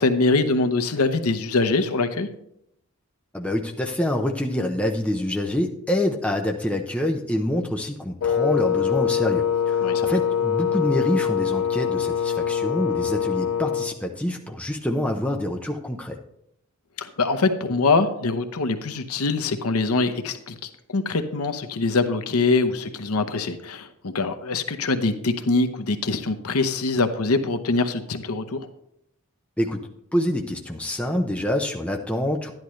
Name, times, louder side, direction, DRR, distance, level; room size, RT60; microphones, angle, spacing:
voice 1, 0.0-2.3 9.8-10.1 17.0-28.7, left 3 dB, 85° left, 9 dB, 0.8 m, -23 dB
voice 2, 3.3-16.2 29.6-32.5, left 1 dB, 5° left, 1 dB, 0.7 m, -26 dB
Wind instrument woodwind instrument, 8.2-14.0, left 8 dB, 70° left, 0.4 m, -24 dB
11.5 x 10.5 x 3.2 m, 0.78 s
head